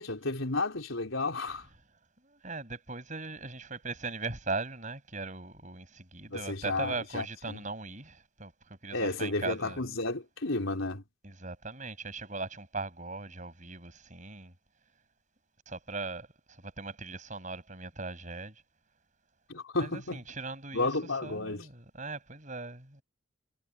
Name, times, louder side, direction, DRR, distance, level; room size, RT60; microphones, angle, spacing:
voice 1, 0.0-1.7 6.3-7.6 8.9-11.0 19.5-20.2 20.7-21.7, left 2 dB, 90° left, 4.2 m, -32 dB
voice 2, 2.3-9.9 11.2-14.5 15.7-16.3 16.6-18.5 19.8-20.9 21.2-23.0, right 3 dB, 40° right, 6.7 m, -39 dB
head